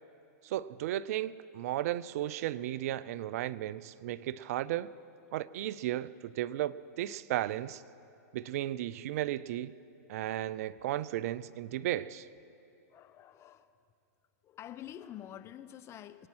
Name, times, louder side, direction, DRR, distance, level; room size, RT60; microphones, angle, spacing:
voice 1, 0.4-4.9 5.3-7.8 8.3-9.7 10.1-12.3, right 13 dB, 60° right, 0.5 m, -34 dB
voice 2, 12.9-13.7 14.4-16.3, left 11 dB, 30° left, 0.7 m, -47 dB
24.5 x 9.6 x 6.1 m
hypercardioid pair, 115°, 9 cm